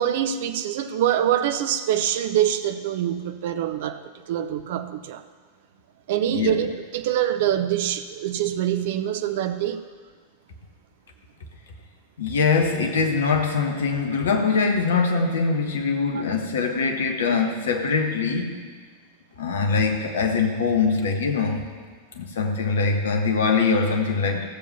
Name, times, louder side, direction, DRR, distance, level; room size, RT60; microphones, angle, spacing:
voice 1, 0.0-5.2 6.1-9.9 16.1-16.2, right 10 dB, 55° right, 10 dB, 0.7 m, -25 dB
voice 2, 12.2-18.6 19.4-21.6 22.1-24.5, left 4 dB, 65° left, 4 dB, 1.5 m, -23 dB
15.0 x 7.2 x 5.7 m, 1.5 s
figure-of-eight pair, 90°, 0 cm